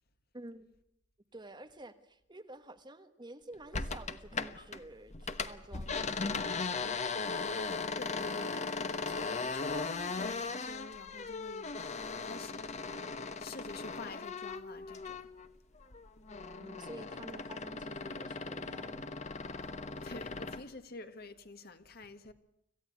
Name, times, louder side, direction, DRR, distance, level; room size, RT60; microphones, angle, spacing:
voice 1, 0.3-0.7 1.3-6.8 16.6-19.1, right 2 dB, 25° right, 1.4 m, -50 dB
sound 1, 3.7-4.8 5.1-15.5 15.8-20.7, left 4 dB, 40° left, 1.2 m, -38 dB
voice 2, 7.9-11.8 12.2-12.7 13.4-15.2 20.0-22.3, left 3 dB, 55° left, 1.7 m, -48 dB
26.5 x 16.0 x 9.6 m
head